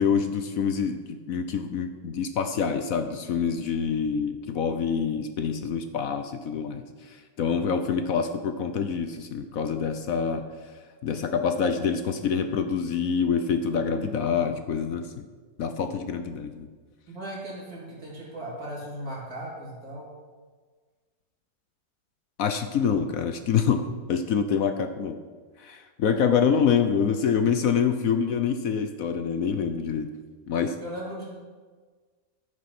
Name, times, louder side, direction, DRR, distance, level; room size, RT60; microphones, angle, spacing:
voice 1, 0.0-10.4 11.0-15.3 15.6-16.7 22.4-25.2 25.6-30.1 30.5-30.8, left 6 dB, 65° left, 8 dB, 1.1 m, -26 dB
voice 2, 17.1-20.1 30.8-31.3, right 1 dB, 65° right, -5 dB, 4.3 m, -37 dB
11.0 x 9.5 x 6.0 m, 1.5 s
omnidirectional pair, 1.7 m